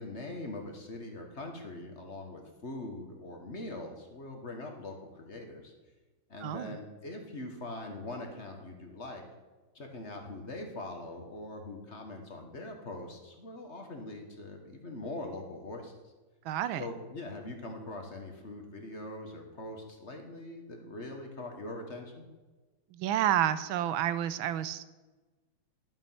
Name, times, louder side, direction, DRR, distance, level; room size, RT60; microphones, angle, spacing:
voice 1, 0.0-5.7 6.3-9.2 9.7-16.1 16.8-22.2, left 2 dB, 35° left, 3 dB, 1.5 m, -42 dB
voice 2, 6.4-6.8 16.4-16.9 22.9-24.8, right 11 dB, 80° right, 14 dB, 1.4 m, -30 dB
11.5 x 7.5 x 5.7 m, 1.2 s
omnidirectional pair, 2.3 m